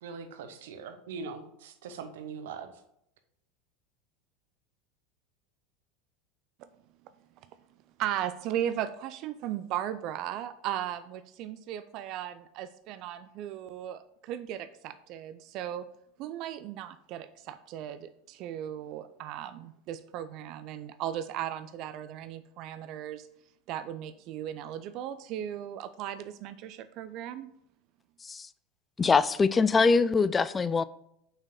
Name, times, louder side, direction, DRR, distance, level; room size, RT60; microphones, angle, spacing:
voice 1, 0.0-2.7, right 5 dB, 75° right, 0.8 m, -41 dB
voice 2, 8.0-15.9 16.2-23.3 23.7-27.5, right 11 dB, 55° right, 0.4 m, -37 dB
voice 3, 29.0-30.8, left 4 dB, 20° left, 0.3 m, -23 dB
5.7 x 4.5 x 5.0 m
hypercardioid pair, 85°, 0 cm